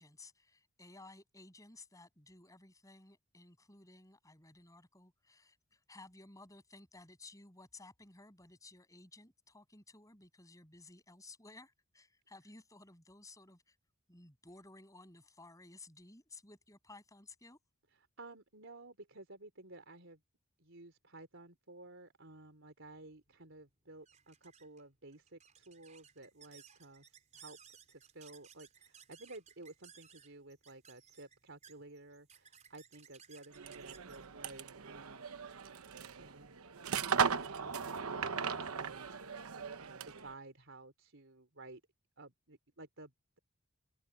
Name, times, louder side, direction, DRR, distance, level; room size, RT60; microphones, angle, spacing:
voice 1, 0.0-13.8 14.1-17.6, left 2 dB, 15° left, 7.9 m, -57 dB
voice 2, 18.2-20.2 20.6-27.0 27.3-27.6 27.9-35.3 35.9-36.6 36.9-39.3 39.8-41.8 42.2-43.4, right 2 dB, 60° right, 4.6 m, -54 dB
sound 1, 23.3-35.8, right 8 dB, 35° right, 5.0 m, -61 dB
sound 2, 33.5-40.3, right 6 dB, 80° right, 1.0 m, -38 dB
open air
head